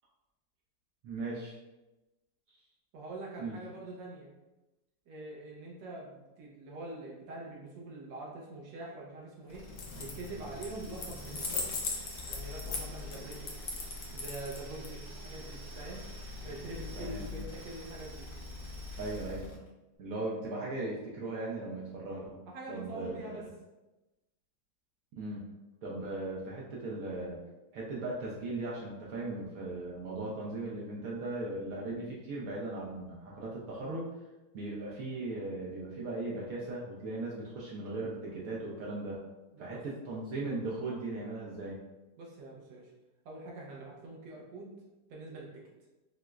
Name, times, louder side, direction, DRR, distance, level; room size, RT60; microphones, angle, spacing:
voice 1, 1.0-1.6 3.4-3.6 16.9-17.2 19.0-19.5 20.0-22.4 22.7-23.5 25.2-25.4 25.8-27.4 27.7-34.1 34.5-39.2 39.6-41.8, right 2 dB, 70° right, -4 dB, 0.8 m, -38 dB
voice 2, 2.9-4.3 5.1-9.6 9.9-11.7 12.3-13.5 14.1-16.0 16.4-18.3 22.5-23.4 39.5-39.8 42.2-42.9 43.2-44.7 45.1-45.6, right 2 dB, 85° right, -3 dB, 1.3 m, -44 dB
sound 1, 9.5-19.7, left 2 dB, 40° left, 0.8 m, -44 dB
sound 2, 9.7-10.3 10.6-14.9, left 4 dB, 75° left, 1.2 m, -38 dB
4.5 x 2.0 x 2.3 m, 1.1 s
omnidirectional pair, 1.9 m